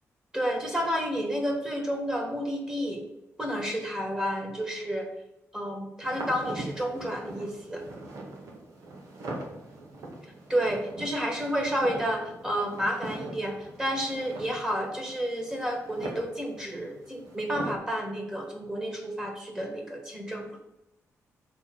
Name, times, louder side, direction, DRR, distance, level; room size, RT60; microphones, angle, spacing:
voice 1, 0.3-3.0 3.4-5.1 5.5-7.8 10.5-20.5, equal, 15° right, 1 dB, 1.6 m, -30 dB
sound 1, 6.0-17.8, right 2 dB, 85° right, 1.9 m, -41 dB
6.8 x 4.7 x 6.1 m, 0.87 s
wide cardioid pair, 165°, 5 cm